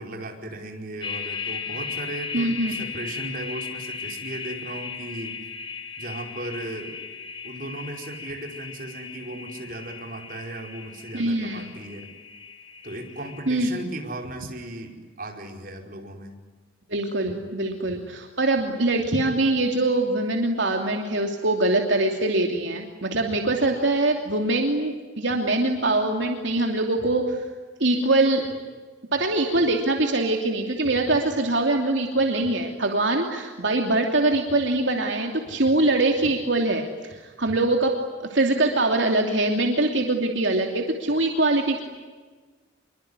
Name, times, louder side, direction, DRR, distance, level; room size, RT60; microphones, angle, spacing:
voice 1, 0.0-5.4 6.0-7.0 7.4-12.1 12.8-16.3, right 1 dB, 45° right, 2 dB, 5.0 m, -36 dB
sound 1, 1.0-13.5, left 5 dB, 25° left, 3.4 m, -37 dB
voice 2, 2.3-2.8 11.1-11.6 13.5-13.7 16.9-27.4 27.8-28.4 29.1-41.8, right 2 dB, 70° right, 2 dB, 2.9 m, -23 dB
26.0 x 23.5 x 9.8 m, 1.4 s
head